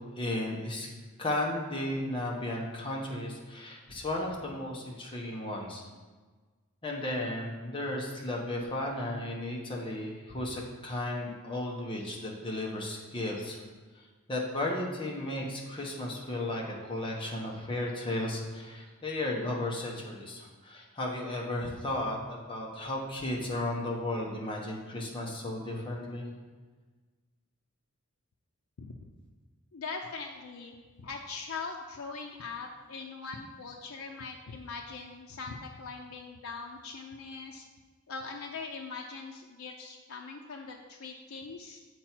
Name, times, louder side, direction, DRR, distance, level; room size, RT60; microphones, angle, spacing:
voice 1, 0.2-0.9 1.2-5.8 6.8-13.6 14.0-26.3, left 1 dB, 25° left, -2 dB, 1.1 m, -34 dB
voice 2, 28.8-29.1 29.7-37.6 38.1-41.8, left 4 dB, 85° left, 1 dB, 0.5 m, -41 dB
7.4 x 4.7 x 4.4 m, 1.4 s
head